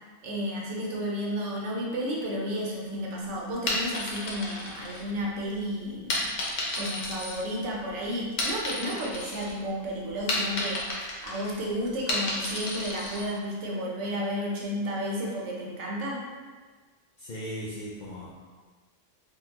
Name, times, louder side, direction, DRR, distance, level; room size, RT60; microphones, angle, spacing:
voice 1, 0.2-6.3 6.7-10.9 11.2-16.2, equal, 75° right, -3 dB, 1.0 m, -32 dB
sound 1, 3.5-5.5 6.1-7.9 8.2-9.5 9.9-13.3, left 2 dB, 85° left, 1.1 m, -32 dB
voice 2, 17.2-18.3, equal, 60° left, -6 dB, 0.5 m, -37 dB
3.7 x 2.3 x 2.8 m, 1.4 s
omnidirectional pair, 1.2 m